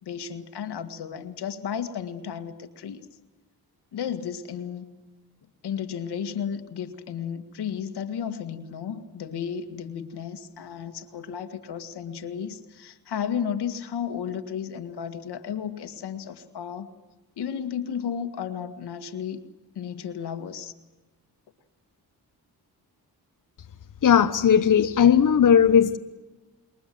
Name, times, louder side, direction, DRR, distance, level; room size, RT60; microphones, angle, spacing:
voice 1, 0.0-3.1 3.9-4.8 5.6-16.9 17.4-19.4 19.8-20.7, left 8 dB, 80° left, 2.0 m, -33 dB
voice 2, 24.0-26.0, left 8 dB, 50° left, 1.1 m, -17 dB
28.0 x 22.0 x 7.8 m
cardioid pair, 65°, 39 cm